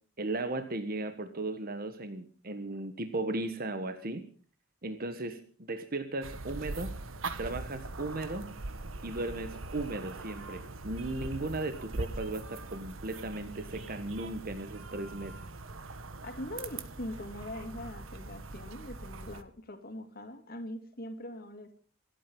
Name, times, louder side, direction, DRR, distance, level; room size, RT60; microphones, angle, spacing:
voice 1, 0.2-4.2 4.8-6.9 7.4-8.5 9.0-15.3, right 2 dB, 50° right, 8 dB, 1.4 m, -36 dB
sound 1, 6.2-19.4, right 3 dB, 90° right, 1.3 m, -42 dB
voice 2, 16.2-21.8, left 1 dB, 50° left, 6 dB, 2.5 m, -42 dB
27.0 x 9.2 x 5.4 m, 0.42 s
head